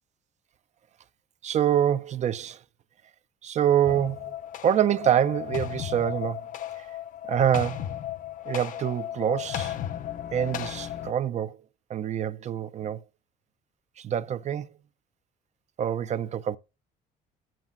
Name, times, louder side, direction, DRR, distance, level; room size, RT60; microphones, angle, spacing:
voice 1, 1.4-2.6 3.4-4.4 4.6-6.4 6.8-6.9 7.2-8.0 8.5-9.8 10.3-11.6 11.9-13.0 14.0-14.7 15.8-16.6, right 10 dB, 45° right, 0.4 m, -26 dB
sound 1, 3.8-11.1, left 11 dB, 50° left, 0.5 m, -35 dB
14.5 x 7.5 x 2.5 m
cardioid pair, 110°, 17 cm